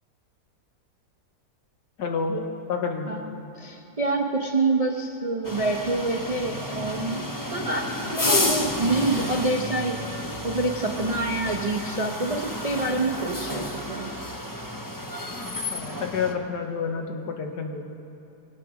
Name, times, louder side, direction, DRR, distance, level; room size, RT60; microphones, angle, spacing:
voice 1, 2.0-2.4 2.7-3.1 15.4-17.9, left 5 dB, 75° left, 4 dB, 1.8 m, -29 dB
voice 2, 3.1-14.1, right 2 dB, 40° right, 2 dB, 0.5 m, -27 dB
sound 1, 5.4-16.3, left 1 dB, 20° left, 0.6 m, -30 dB
21.0 x 8.2 x 6.1 m, 3.0 s
omnidirectional pair, 1.8 m